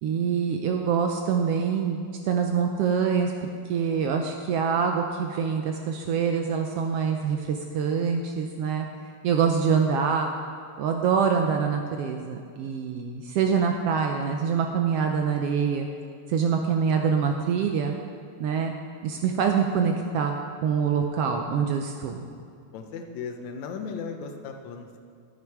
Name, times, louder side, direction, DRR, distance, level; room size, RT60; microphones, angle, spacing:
voice 1, 0.0-8.9 9.2-10.3 10.8-15.9 16.3-17.9 18.4-18.7 19.0-22.3, right 6 dB, 80° right, 3 dB, 1.4 m, -25 dB
voice 2, 16.4-16.8 22.7-25.0, left 5 dB, 80° left, 4 dB, 2.1 m, -37 dB
10.5 x 9.6 x 4.7 m, 2.3 s
omnidirectional pair, 3.3 m